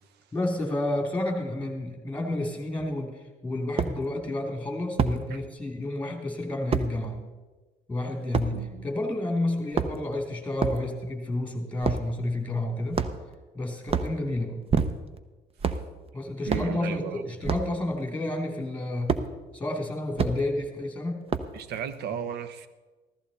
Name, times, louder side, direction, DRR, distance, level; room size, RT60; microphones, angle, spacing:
voice 1, 0.3-7.2 7.9-13.0 13.5-14.6 16.1-19.2 19.5-21.2, left 1 dB, 10° left, 2 dB, 3.0 m, -30 dB
sound 1, 2.8-2.9 3.8-3.9 5.0-5.2 6.7-6.9 8.3-8.5 9.6-10.1 10.6-10.8 11.8-12.1 12.9-13.3 13.8-14.1 14.7-15.2 15.6-15.9 16.5-16.7 17.4-17.7 19.1-19.3 20.2-20.4 21.3-21.6, right 6 dB, 35° right, 0.8 m, -26 dB
voice 2, 8.5-8.8 16.5-17.2 21.5-22.7, right 8 dB, 80° right, 12 dB, 1.0 m, -35 dB
15.0 x 14.0 x 4.2 m, 1.3 s
cardioid pair, 110°, 17 cm